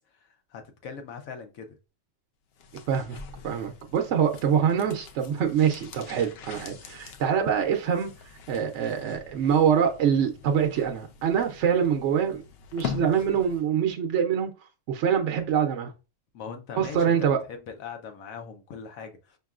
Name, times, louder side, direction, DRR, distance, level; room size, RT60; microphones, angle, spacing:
voice 1, 0.2-1.8 16.3-19.4, left 6 dB, 80° left, 1.2 m, -41 dB
sound 1, 2.5-13.7 14.0-14.1, left 7 dB, 60° left, 0.7 m, -43 dB
voice 2, 2.9-3.2 3.4-8.1 8.5-12.4 12.7-14.5 14.9-15.9 16.8-17.4, right 8 dB, 65° right, 0.8 m, -24 dB
5.3 x 3.0 x 2.4 m
omnidirectional pair, 1.4 m